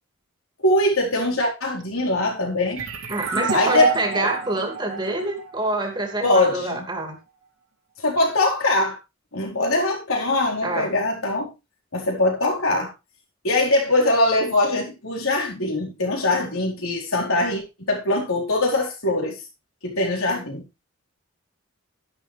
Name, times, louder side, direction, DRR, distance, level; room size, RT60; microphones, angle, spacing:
voice 1, 0.6-2.8 3.5-4.3 6.2-6.9 8.0-9.0 9.3-11.5 11.9-12.9 13.4-19.4 19.8-20.6, left 2 dB, 85° left, 4.5 m, -22 dB
sound 1, 2.8-6.2, right 5 dB, 75° right, 3.0 m, -27 dB
voice 2, 3.1-7.2 10.6-10.9, right 2 dB, 20° right, 2.3 m, -26 dB
11.0 x 11.0 x 3.4 m
head